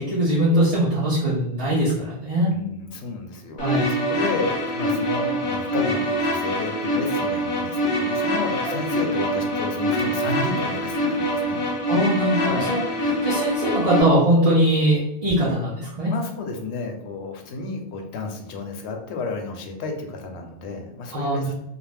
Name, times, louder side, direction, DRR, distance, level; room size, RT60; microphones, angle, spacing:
voice 1, 0.0-2.5 3.6-3.9 8.7-8.8 11.9-12.8 13.2-16.1 21.1-21.5, right 1 dB, 40° right, -7 dB, 0.6 m, -21 dB
voice 2, 2.5-11.6 12.4-12.7 16.0-21.6, left 3 dB, 85° left, 3 dB, 0.9 m, -32 dB
sound 1, 3.6-14.0, equal, 45° left, 0.4 m, -24 dB
2.5 x 2.1 x 3.2 m, 0.82 s
omnidirectional pair, 1.1 m